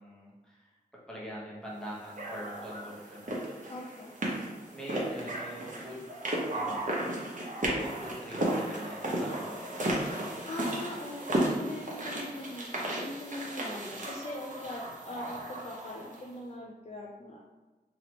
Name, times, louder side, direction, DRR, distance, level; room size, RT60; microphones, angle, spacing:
voice 1, 0.0-3.7 4.7-6.2 6.5-6.9 7.6-9.6, equal, 5° left, -6 dB, 1.1 m, -43 dB
sound 1, 2.2-16.2, right 1 dB, 50° right, 0.8 m, -34 dB
voice 2, 3.7-4.1 10.4-17.4, left 1 dB, 40° left, -3 dB, 0.4 m, -41 dB
3.0 x 2.9 x 2.9 m, 1.2 s
wide cardioid pair, 65°, 17 cm